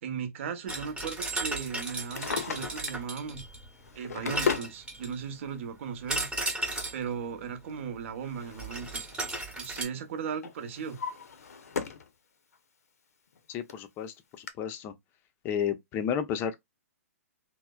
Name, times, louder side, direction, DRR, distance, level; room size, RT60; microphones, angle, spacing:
voice 1, 0.0-3.4 3.9-6.3 6.9-9.0 9.5-11.0, right 6 dB, 55° right, 0.8 m, -37 dB
sound 1, 0.7-3.7 4.3-5.3 6.1-7.1 8.6-9.8, right 2 dB, 10° right, 0.9 m, -35 dB
Drawer open or close, 1.9-3.1 3.8-4.8 5.8-5.9 7.7-9.2 9.5-9.9 10.4-12.1 12.5-12.6 13.4-13.5 13.7-13.8 14.5-14.6, left 6 dB, 75° left, 0.6 m, -35 dB
voice 2, 13.5-14.9 15.4-16.6, left 8 dB, 25° left, 0.5 m, -32 dB
3.1 x 2.1 x 2.2 m
hypercardioid pair, 130°, 8 cm